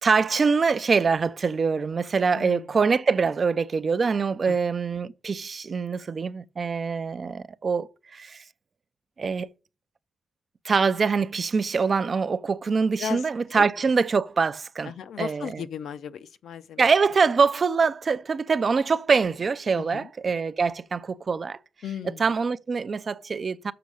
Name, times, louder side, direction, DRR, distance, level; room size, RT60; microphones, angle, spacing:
voice 1, 0.0-8.4 9.2-9.5 10.6-14.9 15.2-15.5 16.8-21.6 22.2-23.7, right 5 dB, 30° right, 0.4 m, -24 dB
voice 2, 2.3-2.7 4.5-4.6 13.0-13.3 13.5-13.6 14.8-16.9 19.8-20.1 21.8-22.3, left 8 dB, 70° left, 0.6 m, -36 dB
6.8 x 6.2 x 6.2 m
wide cardioid pair, 175°, 0 cm